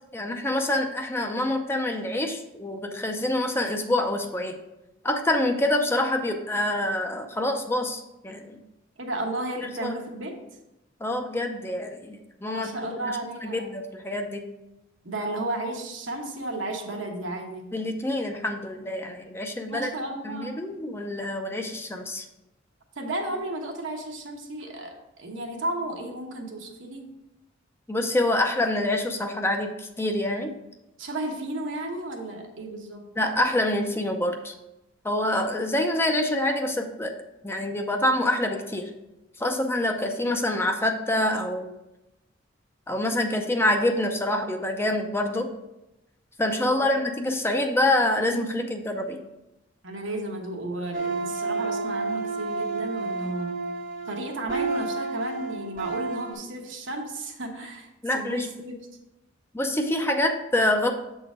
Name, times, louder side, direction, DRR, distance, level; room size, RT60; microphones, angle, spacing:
voice 1, 0.1-4.6 5.0-8.6 9.8-9.9 11.0-14.5 17.7-19.9 20.2-22.2 27.9-30.5 33.2-34.5 35.0-37.1 37.4-38.9 39.4-41.7 42.9-45.5 46.4-49.2 58.0-58.5 59.5-60.9, left 1 dB, 10° left, 4 dB, 0.5 m, -26 dB
voice 2, 9.0-10.4 12.5-13.7 15.0-17.6 19.7-20.5 23.0-27.1 31.0-33.0 46.6-46.9 49.8-53.5 54.0-58.7, right 1 dB, 80° right, 1 dB, 1.2 m, -33 dB
sound 1, 50.9-56.3, right 3 dB, 45° right, 1.0 m, -30 dB
7.5 x 3.9 x 4.9 m, 0.93 s
head